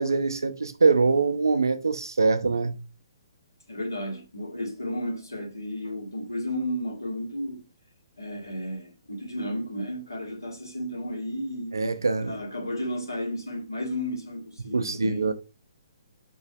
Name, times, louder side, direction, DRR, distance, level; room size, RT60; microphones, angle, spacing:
voice 1, 0.0-2.8 11.7-12.4 14.7-15.3, right 4 dB, 75° right, 0.5 m, -23 dB
voice 2, 3.7-7.6 8.2-11.8 12.2-15.3, equal, 85° left, 1.4 m, -33 dB
5.3 x 3.2 x 2.2 m
figure-of-eight pair, 130°, 2 cm